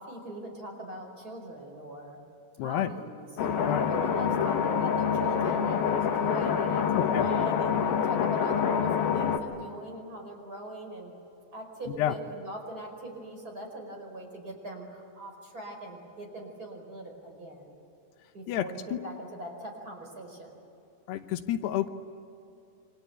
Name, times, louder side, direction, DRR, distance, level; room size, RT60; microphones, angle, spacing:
voice 1, 0.0-2.2 2.6-11.1 11.5-17.7 18.3-20.5, right 1 dB, 20° right, 1 dB, 5.3 m, -40 dB
voice 2, 2.6-2.9 3.6-3.9 6.9-7.3 11.9-12.1 18.5-19.0 21.1-21.9, left 12 dB, 85° left, 9 dB, 3.1 m, -29 dB
sound 1, 3.4-9.4, left 7 dB, 70° left, 3.3 m, -26 dB
29.0 x 25.0 x 8.3 m, 2.7 s
omnidirectional pair, 4.7 m